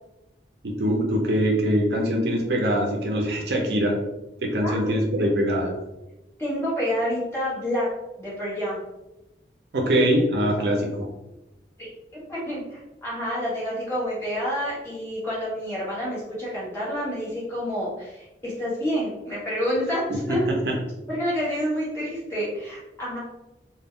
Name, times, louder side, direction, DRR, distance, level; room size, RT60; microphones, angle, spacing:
voice 1, 0.6-4.0 4.4-5.7 9.7-11.1 20.3-20.7, equal, 70° right, 0 dB, 0.5 m, -23 dB
voice 2, 4.6-4.9 6.4-7.9 8.2-8.8 9.8-9.9 10.6-10.7 11.8-20.5 21.1-23.2, equal, 15° left, -8 dB, 1.0 m, -28 dB
2.2 x 2.1 x 3.5 m, 0.96 s
head